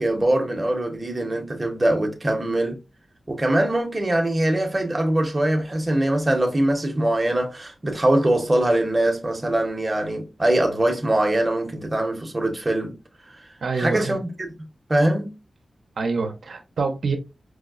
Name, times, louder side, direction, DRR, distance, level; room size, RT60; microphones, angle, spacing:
voice 1, 0.0-2.8 3.3-12.9 13.7-14.3 14.9-15.3, right 1 dB, 20° right, 0.7 m, -22 dB
voice 2, 13.6-14.2 16.0-17.2, right 4 dB, 75° right, 0.5 m, -26 dB
4.6 x 2.0 x 2.3 m
wide cardioid pair, 125°, 0 cm